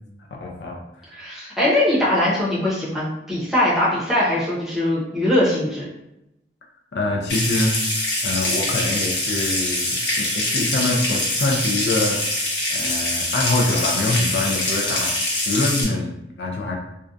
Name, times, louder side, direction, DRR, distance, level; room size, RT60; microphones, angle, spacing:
voice 1, 0.3-0.8 6.9-7.8 8.2-12.4 12.7-15.1 15.5-16.7, left 2 dB, 70° left, 0 dB, 0.4 m, -24 dB
voice 2, 1.2-5.9, left 1 dB, ahead, -8 dB, 0.7 m, -21 dB
Water tap faucet / Sink (filling or washing) / Trickle dribble, 7.3-15.8, left 1 dB, 90° left, 0.9 m, -24 dB
2.5 x 2.2 x 2.5 m, 0.87 s
head